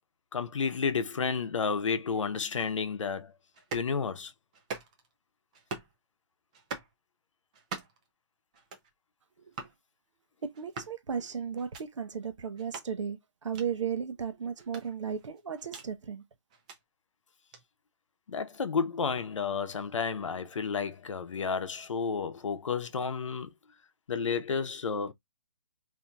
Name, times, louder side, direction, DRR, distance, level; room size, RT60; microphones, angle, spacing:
voice 1, 0.3-3.3 3.7-4.3 18.3-23.5 24.1-25.1, left 5 dB, 90° left, 0.7 m, -31 dB
sound 1, 3.5-3.9 4.5-5.1 5.5-6.0 6.5-6.9 7.5-8.1 8.5-8.9 9.5-9.8 10.5-11.0 11.6-11.8 12.6-12.9 13.5-13.7 14.6-15.9 16.5-16.8 17.5-17.6, right 4 dB, 15° right, 0.4 m, -42 dB
voice 2, 10.4-16.2, right 7 dB, 80° right, 0.7 m, -35 dB
3.9 x 2.7 x 2.3 m
hypercardioid pair, 165°, 15 cm